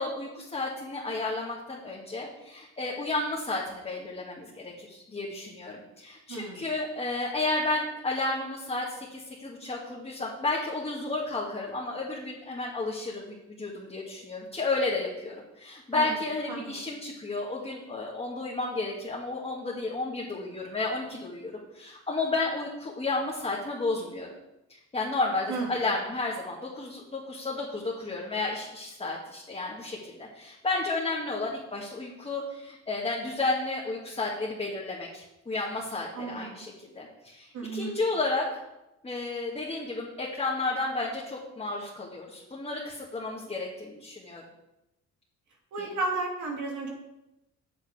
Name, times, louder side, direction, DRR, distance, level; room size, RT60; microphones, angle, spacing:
voice 1, 0.0-24.3 24.7-38.4 39.0-44.4 45.8-45.9, left 3 dB, 20° left, -4 dB, 1.8 m, -32 dB
voice 2, 6.3-6.7 15.9-16.2 16.5-16.8 25.5-25.7 36.1-36.6 37.5-38.0 45.7-46.9, right 3 dB, 75° right, 0 dB, 2.5 m, -33 dB
8.7 x 7.5 x 4.8 m, 0.94 s
cardioid pair, 90°, 30 cm